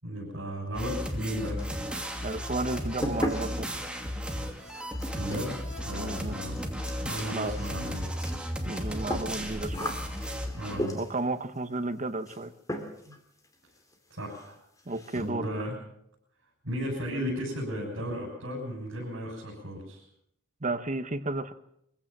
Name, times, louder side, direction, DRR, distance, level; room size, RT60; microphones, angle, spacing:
voice 1, 0.0-1.6 5.2-5.6 5.8-6.6 7.0-8.1 10.6-10.9 13.1-13.2 14.1-14.6 15.1-15.7 16.6-20.0, equal, 70° right, -4 dB, 7.7 m, -35 dB
sound 1, 0.7-10.8, equal, 5° right, 2.6 m, -35 dB
sound 2, 1.6-2.1 2.4-11.3 12.3-12.4 12.7-13.2 13.4-13.5 13.9-14.0 14.3-14.5 14.8-15.3, left 1 dB, 15° left, 2.9 m, -37 dB
voice 2, 2.2-3.7 6.0-6.4 7.3-7.6 8.7-9.9 10.9-12.5 14.9-15.5 20.6-21.5, right 2 dB, 40° right, 9 dB, 1.2 m, -32 dB
24.0 x 16.0 x 7.5 m, 0.76 s
head